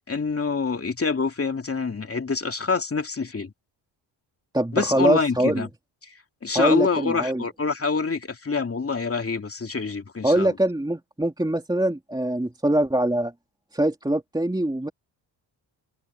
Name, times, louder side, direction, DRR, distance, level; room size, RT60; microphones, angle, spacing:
voice 1, 0.0-3.5 4.7-5.7 6.0-6.1 6.4-10.5, left 4 dB, 30° left, 2.8 m, -26 dB
voice 2, 4.5-5.7 6.5-7.4 10.2-13.3 13.7-14.9, right 1 dB, 10° right, 3.2 m, -23 dB
cardioid pair, 85°, 48 cm